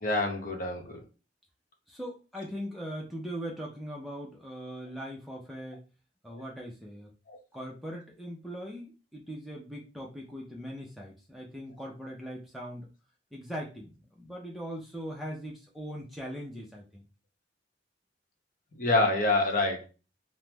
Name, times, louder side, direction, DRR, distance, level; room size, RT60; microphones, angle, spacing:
voice 1, 0.0-1.0 6.3-6.4 7.3-7.4 18.8-19.8, left 2 dB, 50° left, 2 dB, 0.8 m, -27 dB
voice 2, 1.9-5.8 6.2-7.1 7.5-12.9 13.3-17.0, equal, ahead, -2 dB, 0.5 m, -40 dB
2.9 x 2.0 x 3.3 m, 0.32 s
head